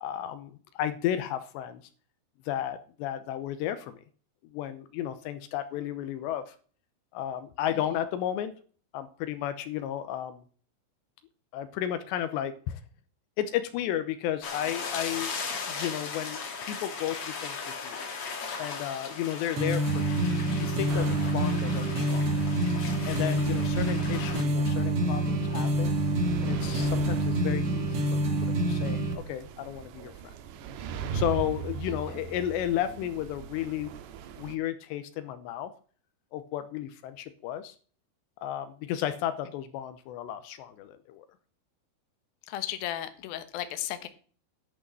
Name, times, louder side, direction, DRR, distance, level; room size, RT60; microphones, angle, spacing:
voice 1, 0.0-1.8 2.5-4.0 4.5-6.6 7.1-8.5 8.9-10.4 11.5-12.8 13.4-17.6 17.8-18.0 18.6-20.0 20.6-22.3 23.0-26.0 26.4-30.1 31.1-33.9 34.4-35.7 36.3-37.8 38.4-41.3, left 11 dB, 85° left, 11 dB, 3.0 m, -33 dB
sound 1, 14.4-24.4, left 5 dB, 45° left, 2.0 m, -38 dB
sound 2, 19.6-29.1, right 1 dB, 45° right, 2.0 m, -27 dB
sound 3, 20.9-34.6, right 7 dB, 80° right, 3.0 m, -41 dB
voice 2, 31.9-32.2 42.5-44.1, left 12 dB, 65° left, 9 dB, 2.7 m, -36 dB
11.0 x 6.4 x 7.4 m, 0.43 s
omnidirectional pair, 5.1 m